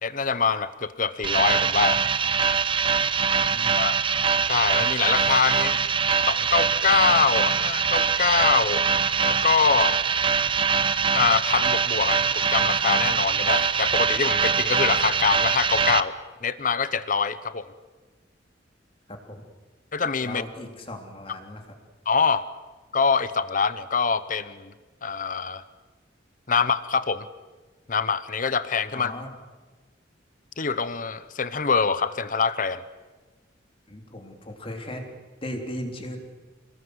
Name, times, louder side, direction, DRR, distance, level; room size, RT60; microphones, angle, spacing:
voice 1, 0.0-2.0 3.7-4.0 4.5-5.8 6.3-8.8 9.2-10.0 11.1-17.7 19.9-20.4 22.1-22.4 22.9-24.7 25.0-25.6 26.5-27.3 27.9-29.1 30.6-32.8, left 5 dB, 45° left, 14 dB, 0.9 m, -24 dB
sound 1, 1.2-16.0, right 6 dB, 25° right, 0.8 m, -23 dB
voice 2, 3.2-3.8 19.1-19.5 20.2-21.7 28.9-29.3 33.9-36.2, left 1 dB, 30° left, 3 dB, 3.4 m, -37 dB
28.0 x 19.5 x 8.0 m, 1.3 s
head